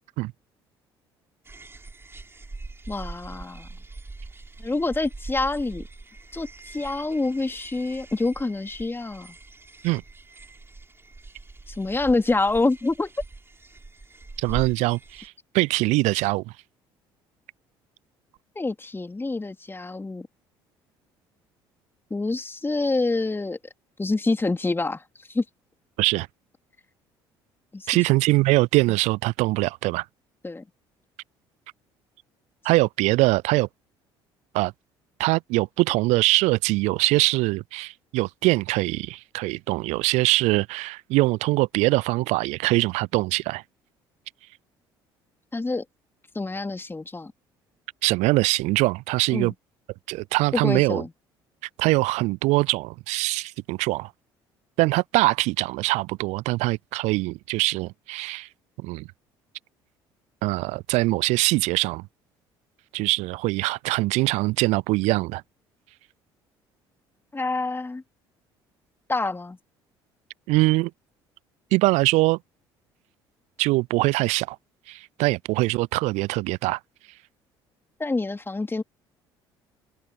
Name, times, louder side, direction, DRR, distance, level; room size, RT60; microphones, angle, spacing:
sound 1, 1.5-15.3, right 3 dB, 20° right, 5.6 m, -42 dB
voice 1, 2.9-3.7 4.6-5.8 6.3-9.3 11.7-13.1 18.5-20.3 22.1-23.6 24.0-25.0 25.3-25.4 27.7-28.0 30.4-30.6 45.5-45.8 46.3-47.3 49.3-49.5 50.5-51.1 67.3-68.0 69.1-69.6 78.0-78.8, left 3 dB, 15° left, 3.2 m, -26 dB
voice 2, 14.4-16.5 26.0-26.3 27.9-30.1 32.6-33.7 34.5-34.7 35.2-43.6 48.0-49.5 50.1-51.0 51.8-54.1 54.8-58.5 58.8-59.1 60.4-62.1 62.9-65.4 70.5-70.9 71.7-72.4 73.6-74.6 74.9-76.8, right 22 dB, 60° right, 0.4 m, -23 dB
hypercardioid pair, 55°, 13 cm